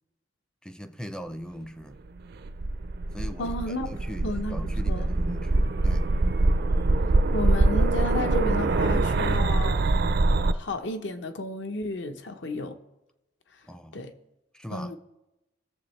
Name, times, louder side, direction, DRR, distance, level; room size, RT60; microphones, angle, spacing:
voice 1, 0.6-2.0 3.1-3.5 3.9-6.1 13.7-14.0 14.5-15.0, equal, 5° left, 0.5 m, -40 dB
sound 1, 2.2-10.5, right 2 dB, 60° right, 0.5 m, -24 dB
voice 2, 3.4-3.9 4.2-4.6 4.9-5.1 7.3-9.9 10.5-12.8 13.9-14.1 14.7-15.0, left 2 dB, 70° left, 0.9 m, -32 dB
17.5 x 7.1 x 3.2 m
head